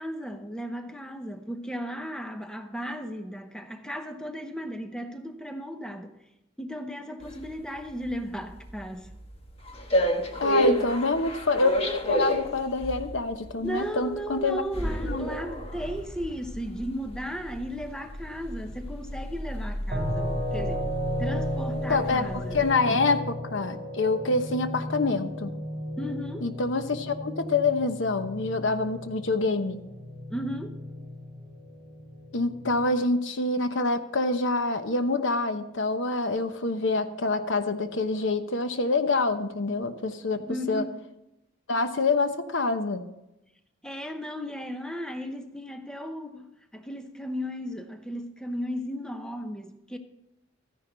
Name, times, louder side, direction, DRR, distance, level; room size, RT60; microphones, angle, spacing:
voice 1, 0.0-6.1 6.6-9.1 10.5-10.9 13.6-20.9 21.2-23.0 26.0-26.5 30.3-30.7 40.4-41.0 43.8-46.5 46.7-50.0, equal, 5° left, 0.7 m, -35 dB
sound 1, 7.2-22.7, equal, 30° left, 1.3 m, -32 dB
voice 2, 10.4-11.7 12.1-14.6 15.0-15.3 21.9-23.2 23.5-25.5 26.4-29.8 32.3-40.8 41.7-43.1, left 3 dB, 70° left, 1.0 m, -26 dB
sound 2, 19.9-32.9, equal, 35° right, 3.2 m, -35 dB
14.0 x 10.0 x 4.0 m
head